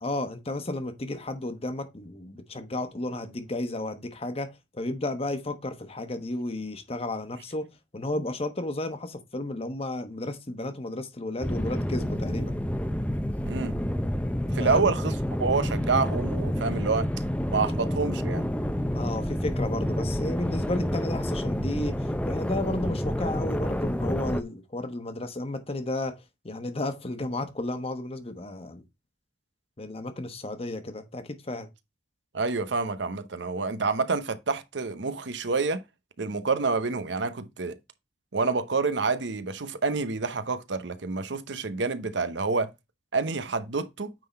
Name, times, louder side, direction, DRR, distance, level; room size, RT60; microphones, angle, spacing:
voice 1, 0.0-7.7 7.9-12.5 14.6-14.9 18.9-26.2 26.4-28.8 29.8-31.7, left 2 dB, 35° left, 1.1 m, -33 dB
sound 1, 11.4-24.4, equal, 5° left, 0.6 m, -29 dB
voice 2, 13.4-13.7 14.5-17.1 17.5-18.5 32.3-35.8 36.2-37.8 38.3-42.7 43.1-44.1, right 4 dB, 75° right, 0.8 m, -28 dB
9.1 x 3.8 x 4.2 m
head